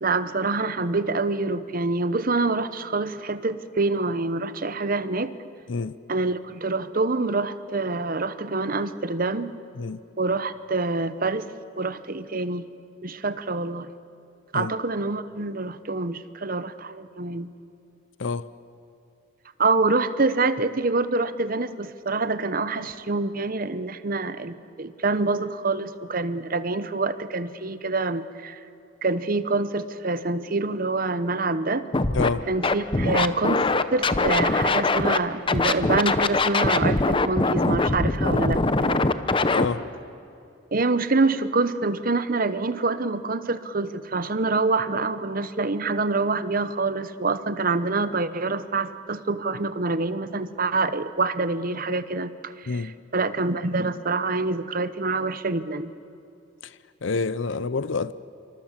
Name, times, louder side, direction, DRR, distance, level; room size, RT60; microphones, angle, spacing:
voice 1, 0.0-5.3 6.1-9.5 10.2-11.5 11.8-12.6 13.0-13.9 14.5-17.5 19.6-28.6 29.0-31.8 32.5-33.6 33.9-39.0 40.7-55.9, right 3 dB, 45° right, 1.0 m, -26 dB
Scratching (performance technique), 31.9-32.3 32.6-35.2 35.5-39.7, left 3 dB, 25° left, 0.8 m, -22 dB
voice 2, 32.1-32.5 39.5-39.8 52.7-52.9 56.6-56.7 57.0-58.1, left 4 dB, 70° left, 0.6 m, -27 dB
27.0 x 24.5 x 7.5 m
head